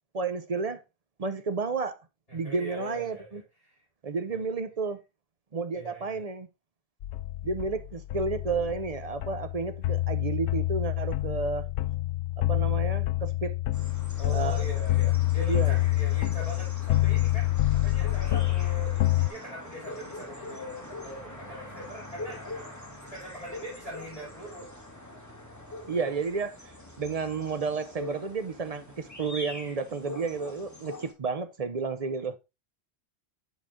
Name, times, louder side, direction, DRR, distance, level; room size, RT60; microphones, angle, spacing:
voice 1, 0.1-0.8 1.2-2.0 2.3-3.4 4.0-5.0 5.5-6.5 7.4-11.7 12.4-13.6 14.3-14.6 15.4-15.8 25.9-26.6 27.0-32.4, right 4 dB, 40° right, 0.7 m, -31 dB
voice 2, 2.3-3.3 3.6-3.8 4.3-4.4 5.7-6.2 14.2-22.4 23.0-24.7, equal, 35° left, 4.9 m, -42 dB
sound 1, 7.0-19.3, left 16 dB, 90° left, 0.9 m, -27 dB
sound 2, 13.7-31.1, left 2 dB, 15° left, 1.6 m, -43 dB
7.7 x 5.1 x 3.5 m
omnidirectional pair, 1.1 m